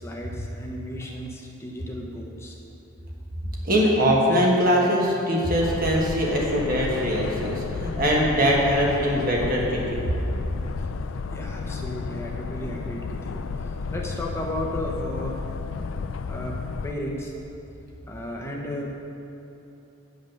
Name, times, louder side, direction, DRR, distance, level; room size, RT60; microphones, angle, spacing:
voice 1, 0.0-2.6 11.3-15.4 16.3-16.6 16.8-17.3 18.1-18.9, left 1 dB, 10° left, -2 dB, 0.9 m, -34 dB
voice 2, 3.6-10.1, equal, 40° right, -3 dB, 1.4 m, -22 dB
sound 1, 5.6-16.9, left 4 dB, 65° left, 0.3 m, -32 dB
9.0 x 5.4 x 6.4 m, 2.9 s
head